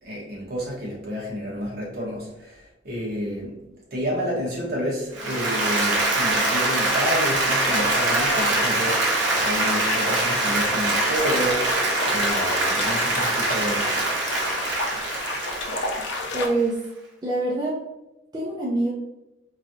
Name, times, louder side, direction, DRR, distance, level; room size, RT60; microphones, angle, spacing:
voice 1, 0.0-3.6 3.9-11.7 12.0-14.0, equal, 55° right, -4 dB, 1.1 m, -30 dB
Applause, 5.1-16.5, right 2 dB, 75° right, 0.8 m, -24 dB
sound 1, 7.6-16.5, left 2 dB, 65° left, 0.5 m, -31 dB
voice 2, 16.3-16.8 17.2-17.8 18.3-18.9, right 2 dB, 20° right, -6 dB, 0.5 m, -24 dB
3.0 x 2.7 x 2.6 m, 0.93 s
head